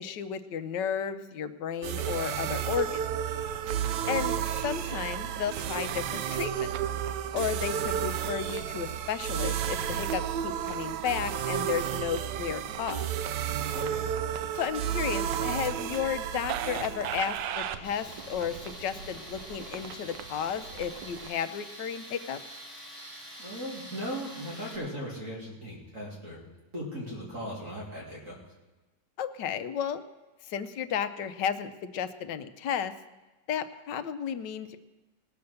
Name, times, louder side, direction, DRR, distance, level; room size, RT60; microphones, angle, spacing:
voice 1, 0.0-3.0 4.1-6.7 7.3-13.1 14.5-22.4 29.2-30.0 30.4-32.9 33.5-34.8, left 8 dB, 80° left, 11 dB, 1.4 m, -33 dB
sound 1, 1.8-21.3, right 9 dB, 85° right, 1.3 m, -32 dB
voice 2, 13.7-14.0 23.4-26.4 26.7-28.4, equal, 45° right, -4 dB, 2.8 m, -38 dB
Tools, 17.8-24.8, equal, ahead, 4.6 m, -46 dB
18.5 x 6.9 x 6.6 m, 1.2 s
omnidirectional pair, 1.9 m